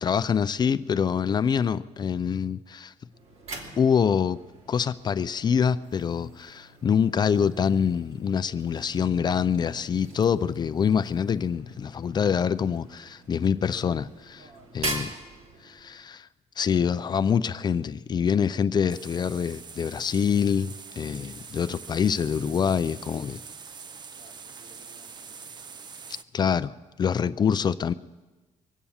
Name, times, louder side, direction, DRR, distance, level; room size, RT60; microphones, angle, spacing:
voice 1, 0.0-2.9 3.8-4.4 4.7-14.4 14.7-15.1 15.6-16.3 16.6-23.4 26.3-27.9, left 7 dB, 35° left, 14 dB, 0.4 m, -25 dB
sound 1, 3.1-16.1, right 2 dB, 60° right, 2.8 m, -42 dB
voice 2, 14.4-15.0 24.1-25.7, right 2 dB, 80° right, -2 dB, 4.0 m, -57 dB
sound 2, 18.9-26.2, right 5 dB, 35° right, 0.6 m, -44 dB
23.5 x 8.3 x 7.2 m, 1.2 s
cardioid pair, 135°, 13 cm